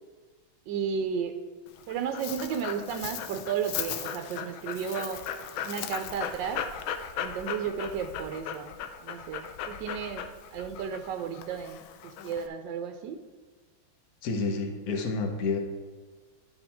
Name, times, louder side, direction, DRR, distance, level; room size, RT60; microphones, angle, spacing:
voice 1, 0.7-1.3 1.9-5.2 5.6-6.6 7.2-10.2 10.5-13.2, right 7 dB, 70° right, 6 dB, 1.1 m, -33 dB
Dog, 1.7-12.5, left 8 dB, 80° left, 1.4 m, -37 dB
voice 2, 14.2-15.6, left 3 dB, 50° left, 3 dB, 1.3 m, -29 dB
11.0 x 5.4 x 3.5 m, 1.4 s
omnidirectional pair, 2.3 m